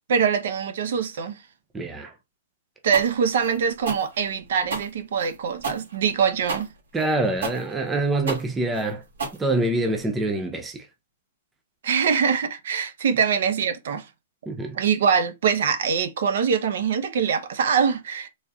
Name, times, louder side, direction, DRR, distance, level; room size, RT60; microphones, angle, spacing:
voice 1, 0.1-1.4 2.8-6.7 11.8-14.0 14.7-18.3, right 6 dB, 60° right, 0.7 m, -23 dB
voice 2, 1.7-2.1 6.9-9.0 9.4-10.9 14.5-14.8, right 2 dB, 10° right, 0.4 m, -25 dB
sound 1, 2.9-10.0, right 4 dB, 90° right, 2.0 m, -33 dB
3.9 x 3.3 x 2.3 m
hypercardioid pair, 170°, 0 cm